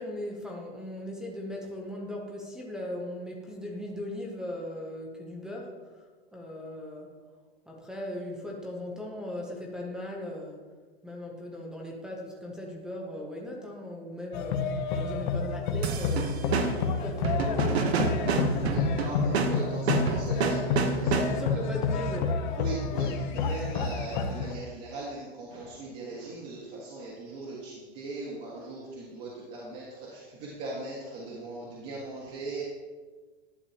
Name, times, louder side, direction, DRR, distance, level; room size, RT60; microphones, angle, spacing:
voice 1, 0.0-6.0 6.3-7.2 7.7-10.6 11.0-16.5 16.8-19.0 21.1-22.3, left 1 dB, ahead, -1 dB, 0.7 m, -38 dB
sound 1, 14.3-24.6, left 4 dB, 50° left, 0.8 m, -29 dB
sound 2, 15.8-21.6, right 5 dB, 85° right, 1.0 m, -29 dB
voice 2, 18.6-21.4 22.6-23.1 23.3-29.8 30.1-32.6, right 2 dB, 35° right, -5 dB, 1.5 m, -39 dB
11.0 x 6.7 x 2.8 m, 1.4 s
supercardioid pair, 155°, 31 cm